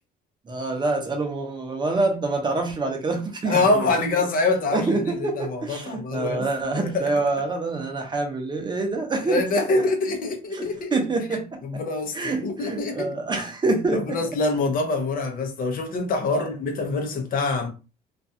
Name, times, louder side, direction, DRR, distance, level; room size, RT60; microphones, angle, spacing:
voice 1, 0.5-4.1 4.7-9.4 10.5-11.6 12.1-14.2 16.3-16.5, right 3 dB, 25° right, 0.6 m, -26 dB
voice 2, 3.4-6.5 6.8-7.1 9.2-11.0 11.6-13.1 13.9-17.7, left 3 dB, 55° left, 0.7 m, -25 dB
2.5 x 2.2 x 2.6 m
cardioid pair, 110°, 17 cm